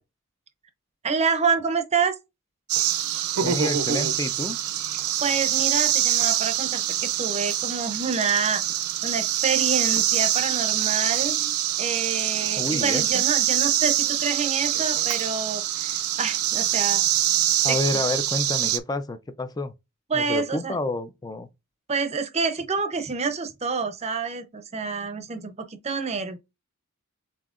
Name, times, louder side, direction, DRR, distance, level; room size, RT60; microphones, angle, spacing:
voice 1, 1.0-2.2 5.2-8.6 9.0-11.4 11.8-17.0 17.7-17.8 20.1-20.7 21.9-26.4, right 5 dB, 30° right, 0.6 m, -27 dB
sound 1, 2.7-18.8, right 11 dB, 75° right, 0.6 m, -24 dB
voice 2, 3.4-4.6 12.6-13.2 17.6-19.7 20.1-21.5, left 2 dB, 15° left, 0.4 m, -29 dB
7.2 x 2.8 x 2.5 m
head